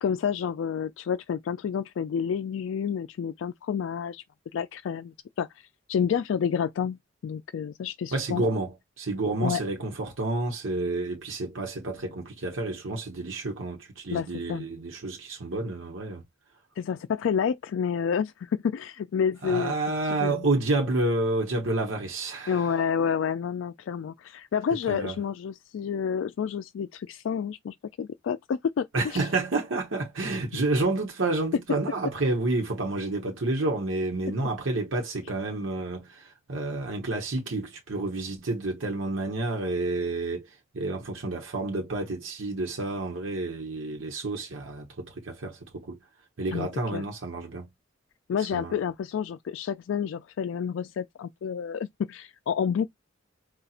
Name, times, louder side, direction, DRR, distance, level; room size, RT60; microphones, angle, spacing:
voice 1, 0.0-4.2 4.5-8.4 9.4-9.6 14.1-14.7 16.8-19.7 20.2-20.4 22.5-28.9 29.1-29.2 46.5-47.0 48.3-52.9, left 7 dB, 75° left, 0.3 m, -29 dB
voice 2, 8.1-16.2 19.4-22.7 24.9-25.2 28.9-46.0 46.4-47.7 48.5-48.7, right 2 dB, 80° right, 1.1 m, -29 dB
4.2 x 2.3 x 2.4 m
head